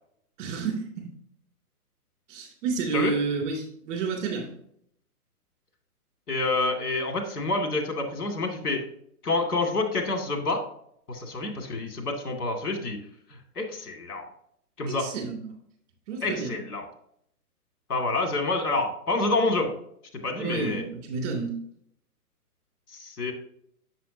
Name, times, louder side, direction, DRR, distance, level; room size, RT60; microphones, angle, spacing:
voice 1, 0.4-1.1 2.3-4.5 14.9-15.5 16.1-16.6 20.4-21.5, right 5 dB, 30° right, 2 dB, 2.8 m, -30 dB
voice 2, 6.3-8.8 9.2-10.6 11.1-13.0 13.6-14.2 14.8-15.1 16.2-16.9 17.9-19.7 20.2-20.8 22.9-23.3, left 2 dB, 75° left, 3 dB, 2.4 m, -27 dB
7.5 x 7.0 x 2.8 m, 0.68 s
hypercardioid pair, 145°, 45 cm